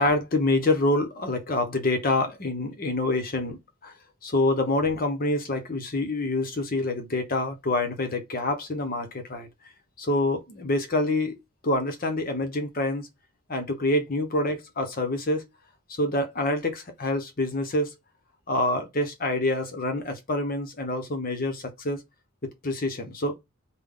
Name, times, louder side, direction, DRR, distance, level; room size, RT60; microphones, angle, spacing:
voice 1, 0.0-3.9 4.2-9.5 10.0-11.4 11.6-13.1 13.5-15.4 16.0-17.9 18.5-22.0 22.4-23.4, left 2 dB, 40° left, 0.8 m, -26 dB
3.7 x 2.2 x 3.5 m
head